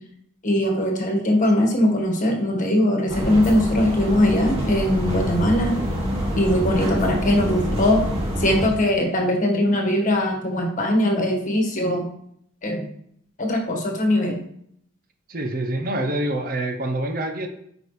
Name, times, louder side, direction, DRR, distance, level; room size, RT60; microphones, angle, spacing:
voice 1, 0.4-5.7 6.3-8.0 8.4-12.0 12.6-12.9 13.4-14.4, left 1 dB, 40° left, 2 dB, 1.5 m, -21 dB
sound 1, 3.1-8.7, equal, 30° right, 2.1 m, -26 dB
voice 2, 15.3-17.5, right 1 dB, 45° right, 6 dB, 0.8 m, -26 dB
9.5 x 5.0 x 3.2 m, 0.68 s
head